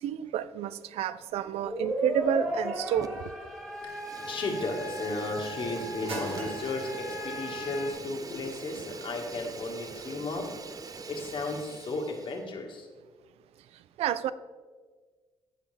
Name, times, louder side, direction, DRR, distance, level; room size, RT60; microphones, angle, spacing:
voice 1, 0.0-3.2 14.0-14.3, right 10 dB, 85° right, 16 dB, 0.4 m, -30 dB
sound 1, 1.3-11.4, right 2 dB, 65° right, 2.0 m, -49 dB
sound 2, 1.4-7.9, equal, 10° right, 2.1 m, -36 dB
Fire, 2.9-3.4 3.7-12.4, right 5 dB, 35° right, 0.6 m, -43 dB
voice 2, 4.2-10.5 11.1-12.9, left 3 dB, 55° left, 2 dB, 1.7 m, -35 dB
14.5 x 5.5 x 3.4 m, 1.5 s
cardioid pair, 95°, 10 cm